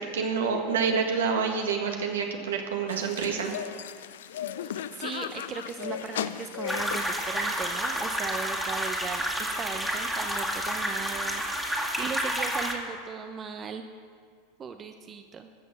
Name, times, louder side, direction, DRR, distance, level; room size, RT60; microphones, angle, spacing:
voice 1, 0.0-3.5, right 5 dB, 80° right, 3 dB, 1.7 m, -27 dB
sound 1, 2.9-8.1, left 10 dB, 75° left, 0.4 m, -37 dB
voice 2, 4.6-13.8 14.6-15.5, right 6 dB, 30° right, 6 dB, 0.8 m, -38 dB
sound 2, 6.7-12.7, equal, ahead, 2.0 m, -30 dB
13.5 x 6.5 x 7.2 m, 2.1 s
hypercardioid pair, 90°, 0 cm